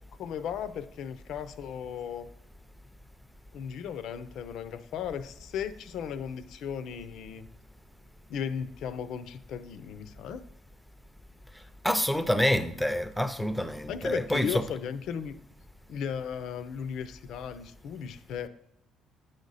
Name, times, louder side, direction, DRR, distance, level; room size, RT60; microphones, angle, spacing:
voice 1, 0.2-2.3 3.5-7.5 8.3-10.4 13.9-15.4 15.9-18.5, left 7 dB, 70° left, 0.5 m, -36 dB
voice 2, 11.8-14.6, equal, ahead, 0.5 m, -27 dB
9.1 x 5.1 x 4.0 m
cardioid pair, 120°, 0 cm